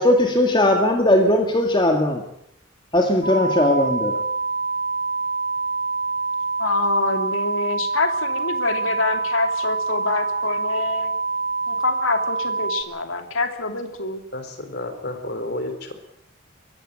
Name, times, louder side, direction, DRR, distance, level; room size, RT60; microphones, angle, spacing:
voice 1, 0.0-2.2 2.9-4.2, left 1 dB, 25° left, 3 dB, 2.1 m, -18 dB
sound 1, 3.2-12.8, right 4 dB, 40° right, 1.9 m, -26 dB
voice 2, 6.6-11.1 11.7-14.2, left 3 dB, 85° left, 6 dB, 2.6 m, -26 dB
voice 3, 14.3-15.9, left 1 dB, 55° left, 7 dB, 4.0 m, -31 dB
22.0 x 15.0 x 8.9 m, 0.75 s
head